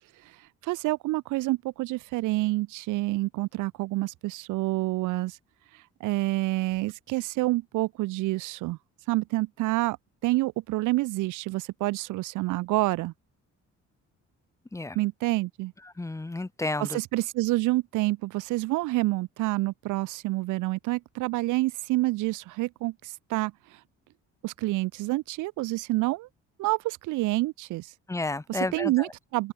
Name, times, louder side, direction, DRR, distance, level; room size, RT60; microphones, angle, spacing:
voice 1, 0.6-5.4 5.7-8.8 9.1-10.0 10.2-13.1 14.9-15.7 16.8-23.8 24.4-26.3 26.6-27.9 28.5-29.5, right 19 dB, 85° right, 0.5 m, -28 dB
voice 2, 16.0-17.0 28.1-29.1, left 2 dB, 10° left, 0.6 m, -31 dB
open air
cardioid pair, 90°, 30 cm